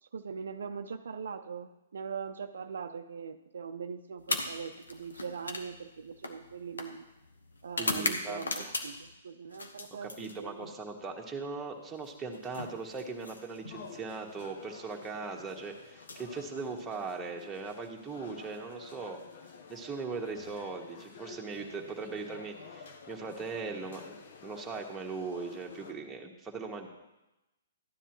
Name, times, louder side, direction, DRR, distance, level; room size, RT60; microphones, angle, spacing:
voice 1, 0.0-7.0 7.6-10.7, right 6 dB, 70° right, 8 dB, 0.5 m, -41 dB
sound 1, 4.2-9.1 9.5-10.8 12.0-13.8 14.9-15.1 15.9-17.1, left 2 dB, 85° left, 1.1 m, -38 dB
voice 2, 7.8-8.7 10.0-19.2 19.7-24.2 24.4-26.9, right 4 dB, 10° right, -1 dB, 1.5 m, -39 dB
sound 2, 13.7-25.9, left 5 dB, 60° left, 1.1 m, -51 dB
13.5 x 9.9 x 3.0 m, 0.99 s
hypercardioid pair, 130°, 0 cm